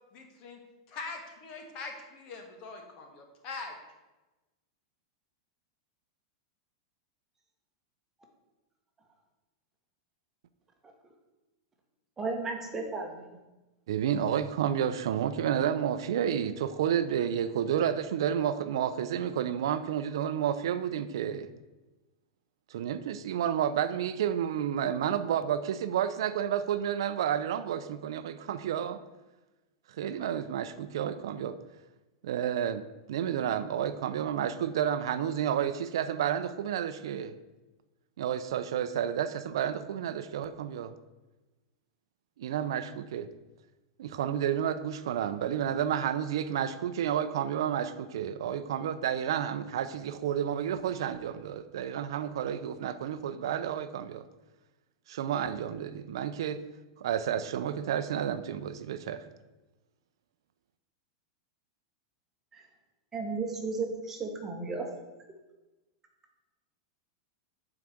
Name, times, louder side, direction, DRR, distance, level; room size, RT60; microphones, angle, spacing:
voice 1, 0.1-0.6 0.9-3.8, left 3 dB, 40° left, 3 dB, 1.8 m, -42 dB
voice 2, 12.2-13.4 62.5-62.6 63.1-64.9, right 3 dB, 15° right, 2 dB, 1.3 m, -34 dB
voice 3, 13.9-21.5 22.7-29.0 30.0-31.6 32.2-32.8 33.1-37.3 38.2-40.9 42.4-43.3 44.0-54.2 55.1-56.6 57.0-59.2, right 9 dB, 75° right, 11 dB, 0.6 m, -30 dB
7.8 x 4.9 x 7.4 m, 1.1 s
supercardioid pair, 155°, 3 cm